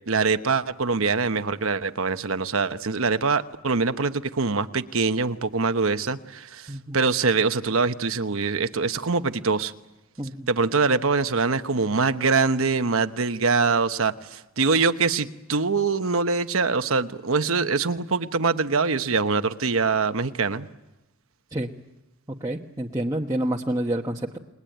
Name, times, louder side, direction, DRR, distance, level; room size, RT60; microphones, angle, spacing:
voice 1, 0.1-9.7 10.5-20.7, right 4 dB, 70° right, 9 dB, 1.1 m, -24 dB
voice 2, 22.4-24.4, right 1 dB, 15° right, -1 dB, 1.1 m, -28 dB
29.0 x 20.5 x 9.2 m, 0.99 s
head